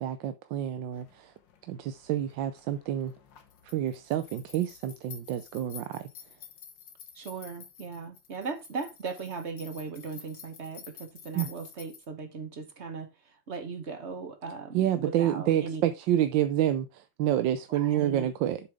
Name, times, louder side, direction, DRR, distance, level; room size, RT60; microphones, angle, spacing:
voice 1, 0.0-1.3 1.7-3.1 3.6-6.1 11.3-11.5 14.7-18.6, right 11 dB, 75° right, 1.3 m, -28 dB
sound 1, 0.9-12.1, left 8 dB, 70° left, 1.8 m, -50 dB
voice 2, 7.1-15.8 17.7-18.3, right 4 dB, 40° right, 1.3 m, -38 dB
7.7 x 7.0 x 3.5 m
omnidirectional pair, 2.1 m